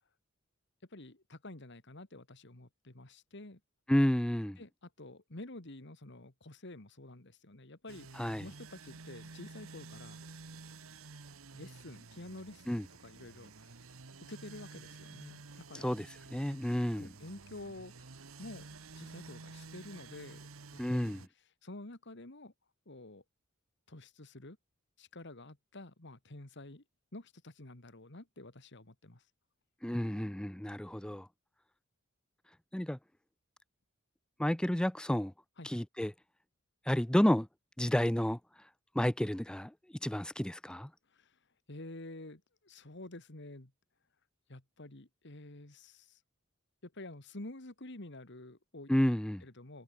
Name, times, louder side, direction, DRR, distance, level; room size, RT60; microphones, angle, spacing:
voice 1, 0.9-3.6 4.6-10.2 11.5-13.8 14.2-15.9 16.9-18.7 19.0-21.2 21.6-22.5 22.9-23.2 23.9-24.6 25.0-26.8 27.1-29.2 35.6-35.7 41.1-41.4 41.7-43.7 44.5-46.2 46.8-48.9 49.4-49.8, left 2 dB, 55° left, 2.2 m, -49 dB
voice 2, 3.9-4.6 8.1-8.5 12.7-12.8 15.7-17.1 20.8-21.2 29.8-31.3 32.7-33.0 34.4-35.3 35.6-36.1 36.9-37.5 37.8-38.7 38.9-39.7 40.0-40.9 48.9-49.4, equal, 5° left, 0.4 m, -31 dB
sound 1, 7.9-21.3, right 4 dB, 90° right, 1.4 m, -51 dB
head